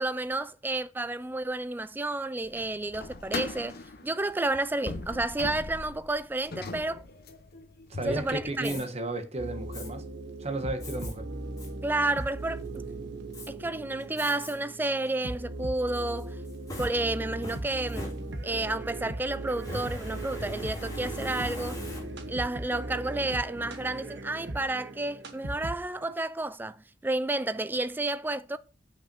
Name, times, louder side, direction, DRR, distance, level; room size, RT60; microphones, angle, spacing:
voice 1, 0.0-3.8 4.0-7.0 8.0-8.8 11.8-12.8 13.5-16.4 16.8-18.1 18.4-21.8 22.3-26.8 27.0-28.6, right 2 dB, 10° right, 0.4 m, -31 dB
sound 1, 2.4-8.8, left 3 dB, 55° left, 0.8 m, -40 dB
voice 2, 7.9-10.1 10.4-11.3, right 2 dB, 35° right, 1.1 m, -33 dB
Fire, 8.6-8.9 9.7-9.9 10.8-11.1 11.6-11.7 12.2-12.7 13.3-13.5 14.2-14.5 15.0-15.1 16.2-18.7 19.5-22.4, left 1 dB, 20° left, 2.3 m, -41 dB
sound 2, 9.4-26.1, right 2 dB, 65° right, 1.2 m, -38 dB
6.0 x 5.2 x 6.6 m
head